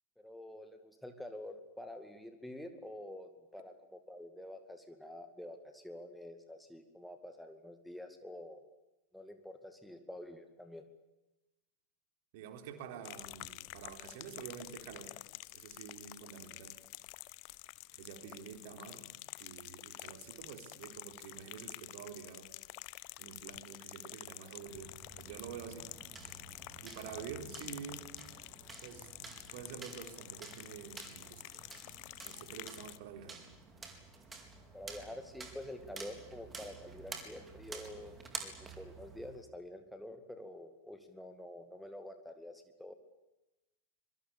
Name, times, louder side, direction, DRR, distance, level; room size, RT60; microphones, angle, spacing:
voice 1, 0.2-8.6 9.1-10.8 34.7-42.9, left 1 dB, ahead, 7 dB, 2.3 m, -48 dB
voice 2, 12.3-15.2 15.5-16.8 17.9-19.1 19.4-22.5 23.2-25.9 26.8-28.1 28.8-31.6 32.2-33.4, right 7 dB, 50° right, 6 dB, 3.8 m, -48 dB
sound 1, 13.0-33.0, left 23 dB, 45° left, 0.9 m, -49 dB
sound 2, 24.7-39.4, right 4 dB, 15° right, 4.4 m, -50 dB
25.5 x 24.0 x 8.6 m, 0.99 s
figure-of-eight pair, 90°, 0 cm